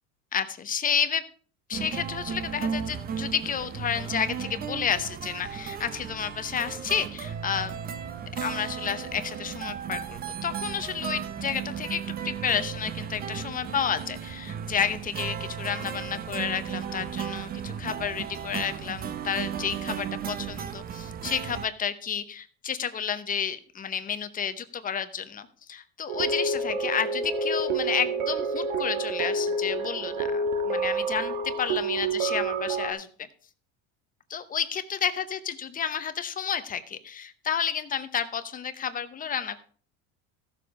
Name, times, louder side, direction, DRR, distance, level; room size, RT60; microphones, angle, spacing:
voice 1, 0.3-1.2 1.7-7.7 8.4-33.1 34.3-39.6, left 8 dB, 20° left, 11 dB, 0.8 m, -31 dB
sound 1, 1.7-21.7, right 8 dB, 25° right, 0.7 m, -35 dB
sound 2, 26.1-32.9, right 3 dB, 85° right, 2.1 m, -28 dB
15.0 x 7.2 x 4.8 m, 0.43 s
cardioid pair, 150°, 37 cm